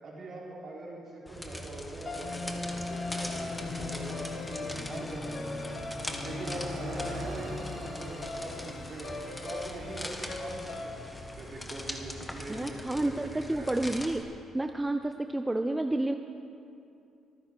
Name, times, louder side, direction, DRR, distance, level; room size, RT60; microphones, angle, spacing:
voice 1, 0.0-4.2 4.5-5.8 6.2-13.7, right 2 dB, 50° right, -3 dB, 3.8 m, -42 dB
sound 1, 1.3-14.2, left 1 dB, 15° left, 1.5 m, -42 dB
sound 2, 2.0-12.3, left 3 dB, 50° left, 2.2 m, -39 dB
Car passing by, 3.7-13.8, right 2 dB, 75° right, 2.0 m, -48 dB
voice 2, 12.5-14.2 14.5-16.2, right 2 dB, 15° right, 6 dB, 0.6 m, -30 dB
25.5 x 9.8 x 4.6 m, 2.6 s
cardioid pair, 90°, 0 cm